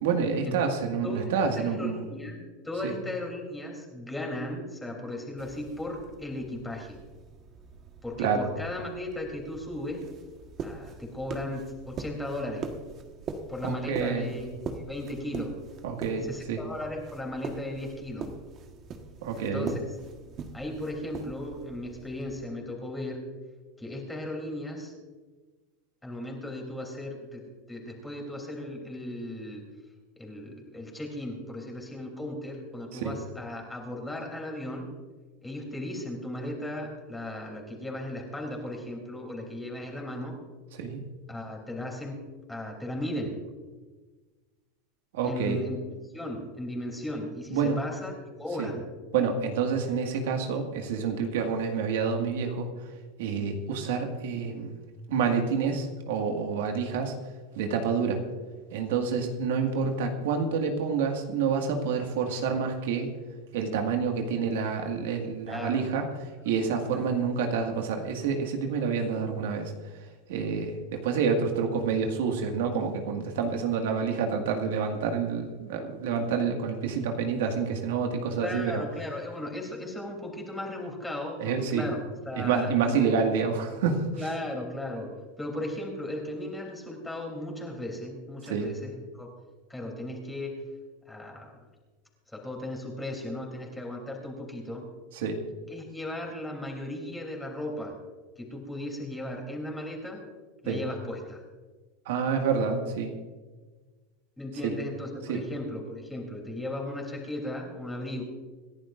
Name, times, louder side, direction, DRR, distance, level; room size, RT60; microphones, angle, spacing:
voice 1, 0.0-2.0 2.8-2.9 8.2-8.5 13.6-14.3 15.8-16.6 19.2-19.8 32.9-33.2 40.8-41.0 45.1-45.6 47.5-47.8 48.6-48.7 49.1-52.9 53.2-54.8 55.1-57.1 57.5-58.2 58.7-63.1 63.5-78.8 81.4-81.9 82.3-84.3 88.5-88.7 95.1-95.4 100.7-100.8 102.1-103.1 104.6-104.8 105.3-105.4, right 5 dB, 80° right, 3 dB, 1.9 m, -28 dB
voice 2, 1.0-7.0 8.0-10.0 10.6-12.6 13.5-15.5 16.2-18.3 19.4-19.8 20.5-23.2 23.8-24.9 26.0-29.7 30.2-34.9 35.4-40.4 41.3-42.2 42.5-43.4 45.2-45.8 46.1-48.1 48.4-48.8 65.4-65.8 66.9-67.0 78.4-82.0 82.2-83.0 84.2-89.3 89.7-90.6 91.0-91.5 92.3-94.9 95.7-98.0 98.4-100.2 100.6-101.4 104.4-108.2, left 1 dB, 5° left, 0 dB, 3.3 m, -36 dB
sound 1, 5.4-22.5, right 5 dB, 35° right, 1.4 m, -43 dB
27.0 x 11.0 x 2.6 m, 1.4 s
supercardioid pair, 135°, 0 cm